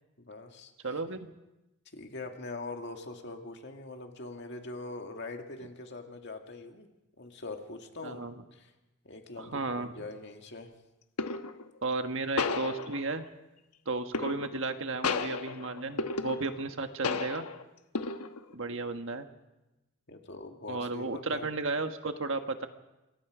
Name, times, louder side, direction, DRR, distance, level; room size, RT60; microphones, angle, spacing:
voice 1, 0.2-1.0 1.9-6.9 7.2-8.2 8.5-8.7 9.0-9.7 9.9-10.7 20.1-21.5, left 2 dB, 50° left, 4 dB, 2.1 m, -43 dB
voice 2, 0.8-1.3 8.0-8.3 9.4-9.9 11.8-13.2 13.8-17.4 18.5-19.3 20.7-22.7, right 3 dB, 60° right, 7 dB, 1.5 m, -34 dB
sound 1, 9.6-9.9 11.2-11.7 12.4-13.3 14.1-14.7 15.0-16.7 17.0-17.6 18.0-18.5, left 4 dB, 90° left, 1.2 m, -33 dB
27.5 x 22.0 x 5.0 m, 0.99 s
head